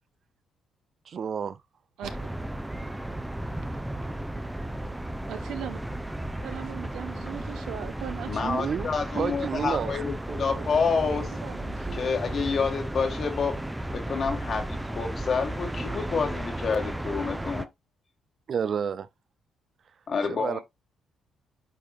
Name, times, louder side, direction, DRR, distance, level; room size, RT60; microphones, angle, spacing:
voice 1, 1.1-1.6 8.4-10.0 10.3-10.7 18.5-19.1 20.3-20.6, right 7 dB, 55° right, 0.4 m, -30 dB
sound 1, 2.0-17.7, right 1 dB, 10° right, 0.7 m, -34 dB
voice 2, 5.3-5.8 6.4-8.3 11.1-12.1, right 9 dB, 80° right, 1.1 m, -38 dB
voice 3, 8.3-11.4 11.9-13.6 13.9-17.7 20.1-20.6, left 5 dB, 50° left, 1.9 m, -28 dB
8.5 x 4.6 x 2.5 m
cardioid pair, 90°, 0 cm